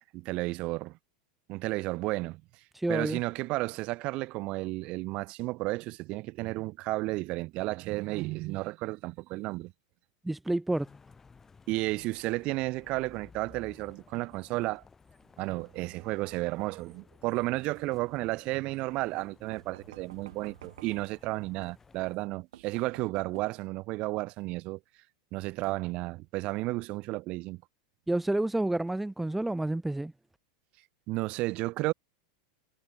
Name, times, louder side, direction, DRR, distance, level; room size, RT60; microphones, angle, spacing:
voice 1, 0.1-1.0 1.5-2.4 2.9-9.7 11.7-14.8 15.4-24.8 25.3-27.6 31.1-31.9, right 21 dB, 45° right, 2.2 m, -33 dB
voice 2, 2.7-3.2 10.2-10.9 28.1-30.1, right 2 dB, 5° right, 1.0 m, -29 dB
sound 1, 10.7-22.2, left 5 dB, 15° left, 8.0 m, -57 dB
sound 2, 17.3-17.8 19.5-21.2 22.1-22.2 22.5-23.5, right 12 dB, 85° right, 3.6 m, -51 dB
supercardioid pair, 125°, 2 cm